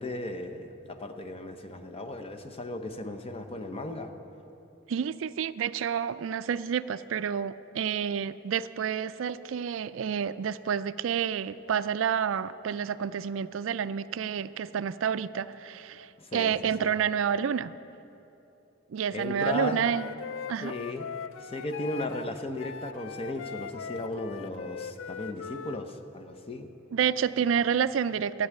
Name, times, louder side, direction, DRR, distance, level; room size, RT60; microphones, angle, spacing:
voice 1, 0.0-4.1 16.2-16.9 19.1-19.8 20.6-21.1 21.4-26.7, left 2 dB, 30° left, 7 dB, 0.8 m, -36 dB
voice 2, 4.9-17.7 18.9-20.1 20.5-20.7 26.9-28.5, right 7 dB, 80° right, 15 dB, 0.4 m, -29 dB
Wind instrument woodwind instrument, 19.4-25.8, left 6 dB, 75° left, 0.4 m, -40 dB
13.5 x 8.2 x 8.9 m, 2.9 s
head